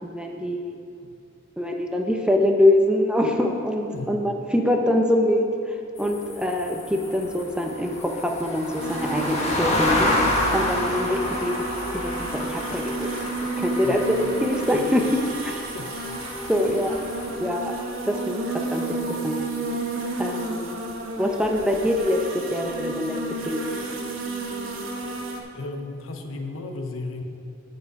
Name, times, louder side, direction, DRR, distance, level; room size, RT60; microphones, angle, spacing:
voice 1, 0.0-0.8 1.6-10.1 10.5-11.7 11.9-13.1 13.6-15.7 16.5-17.0 17.3-17.7 18.1-19.0 19.2-19.4 20.2-20.7 21.2-23.2 23.4-23.6, left 1 dB, 5° right, 2 dB, 0.7 m, -24 dB
sound 1, 6.0-17.3, left 1 dB, 35° left, 1.4 m, -29 dB
sound 2, 8.8-25.4, right 3 dB, 80° right, 1.2 m, -32 dB
sound 3, 11.5-25.2, left 1 dB, 65° left, 1.3 m, -43 dB
voice 2, 25.5-27.2, left 2 dB, 85° left, 5 dB, 0.9 m, -34 dB
14.5 x 5.3 x 4.8 m, 2.5 s
head